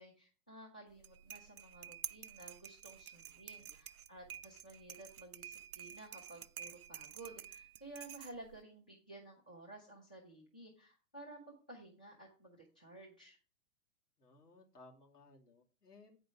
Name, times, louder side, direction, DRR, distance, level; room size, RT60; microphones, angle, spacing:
voice 1, 0.0-13.4, right 2 dB, 5° left, -4 dB, 0.3 m, -54 dB
sound 1, 0.9-8.6, right 9 dB, 65° right, 0.5 m, -50 dB
voice 2, 3.2-3.7 14.2-16.2, left 3 dB, 80° left, -1 dB, 2.6 m, -61 dB
8.4 x 5.0 x 6.0 m, 0.36 s
figure-of-eight pair, 115°, 47 cm